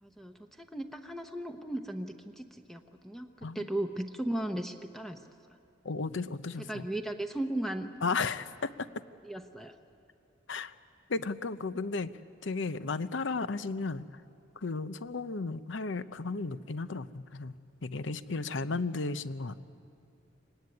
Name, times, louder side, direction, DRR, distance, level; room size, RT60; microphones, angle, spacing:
voice 1, 0.0-5.2 6.7-7.9 9.2-9.7, right 1 dB, ahead, 5 dB, 0.8 m, -36 dB
voice 2, 5.8-6.9 8.0-8.9 10.5-10.7 11.1-12.1 12.4-14.1 14.6-17.5 17.8-19.6, left 4 dB, 65° left, 13 dB, 0.7 m, -34 dB
24.0 x 18.5 x 9.5 m, 2.5 s
head